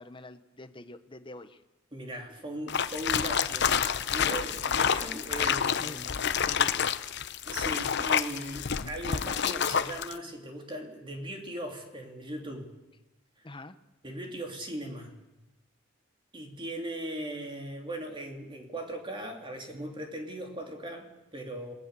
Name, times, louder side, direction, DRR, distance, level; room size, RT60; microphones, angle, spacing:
voice 1, 0.0-1.6 5.7-6.1 6.4-7.0 13.4-13.8, left 2 dB, 25° left, 10 dB, 1.1 m, -45 dB
voice 2, 1.9-6.5 7.5-12.7 14.0-15.2 16.3-21.7, right 1 dB, 25° right, 2 dB, 3.2 m, -39 dB
sound 1, 2.7-10.1, left 7 dB, 60° left, 0.8 m, -28 dB
27.5 x 19.0 x 6.9 m, 1.0 s
head